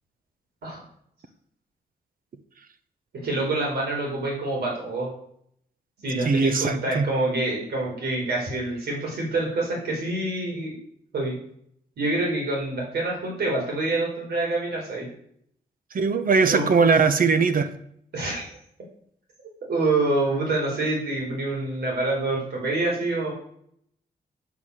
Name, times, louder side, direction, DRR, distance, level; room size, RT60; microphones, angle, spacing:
voice 1, 3.2-5.1 6.0-10.7 11.1-11.3 12.0-15.1 16.5-16.7 18.1-18.5 19.7-23.3, right 2 dB, 80° right, -2 dB, 4.4 m, -26 dB
voice 2, 6.2-7.1 15.9-17.7, right 5 dB, 60° right, 10 dB, 1.2 m, -20 dB
9.4 x 7.4 x 6.5 m, 0.68 s
cardioid pair, 80°, 17 cm